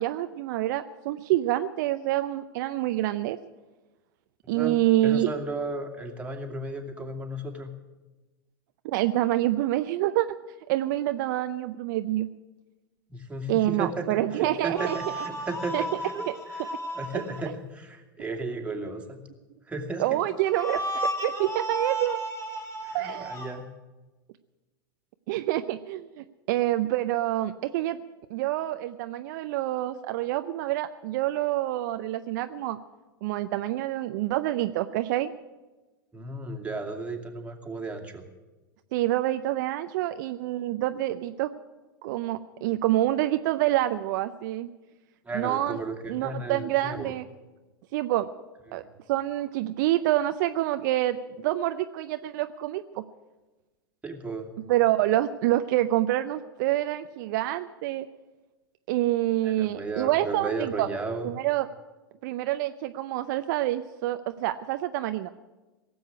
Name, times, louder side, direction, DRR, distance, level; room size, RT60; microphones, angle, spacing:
voice 1, 0.0-3.4 4.5-5.3 8.8-10.3 10.7-12.3 13.5-15.0 15.7-15.8 20.0-20.8 21.2-22.2 22.9-23.3 25.3-28.0 28.3-32.8 33.2-35.3 38.9-41.5 42.0-44.7 45.3-45.8 46.1-47.2 47.9-48.3 48.7-48.8 49.1-53.0 54.7-58.1 58.9-60.9 61.2-61.7 62.2-65.3, right 15 dB, 55° right, 10 dB, 0.6 m, -27 dB
voice 2, 4.5-7.7 13.1-16.7 16.9-19.2 19.7-20.2 22.8-23.6 36.1-38.3 45.2-47.1 48.7-48.9 54.0-54.5 59.4-61.3, right 2 dB, 10° right, 1 dB, 2.4 m, -34 dB
sound 1, 14.8-17.5 20.4-23.5, equal, 25° left, 3.0 m, -33 dB
17.5 x 7.9 x 10.0 m, 1.2 s
hypercardioid pair, 95°, 12 cm